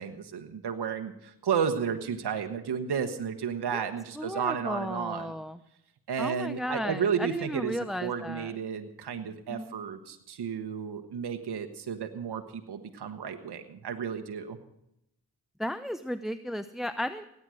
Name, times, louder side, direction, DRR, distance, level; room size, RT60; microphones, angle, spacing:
voice 1, 0.0-5.3 6.1-14.6, right 7 dB, 80° right, 6 dB, 1.2 m, -32 dB
voice 2, 4.2-5.6 6.2-8.5 9.5-9.7 15.6-17.3, equal, ahead, 12 dB, 0.7 m, -34 dB
17.5 x 9.7 x 6.3 m, 0.81 s
cardioid pair, 45°, 39 cm